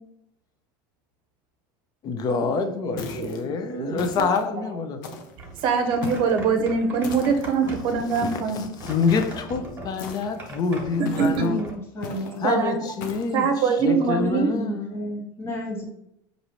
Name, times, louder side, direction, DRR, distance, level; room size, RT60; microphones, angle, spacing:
voice 1, 2.0-5.0 7.6-7.7 8.1-11.6 12.4-14.9, left 5 dB, 40° left, 7 dB, 0.6 m, -27 dB
voice 2, 2.8-3.4 3.7-4.0 5.1-5.2 5.6-8.7 11.0-11.5 12.4-12.8 13.3-14.5, right 5 dB, 55° right, 5 dB, 0.7 m, -23 dB
sound 1, 3.0-3.4 4.0-4.5 5.0-5.4 6.0-6.4 7.0-7.6 9.1-9.4 10.0-10.5 11.1-11.5 12.0-12.4 13.0-13.4, left 5 dB, 85° left, 0.6 m, -39 dB
sound 2, 5.4-11.7, right 1 dB, 20° right, 1.4 m, -40 dB
voice 3, 11.1-12.6 14.0-15.9, equal, 25° left, -1 dB, 1.0 m, -33 dB
4.7 x 2.7 x 2.9 m, 0.76 s
supercardioid pair, 115°, 10 cm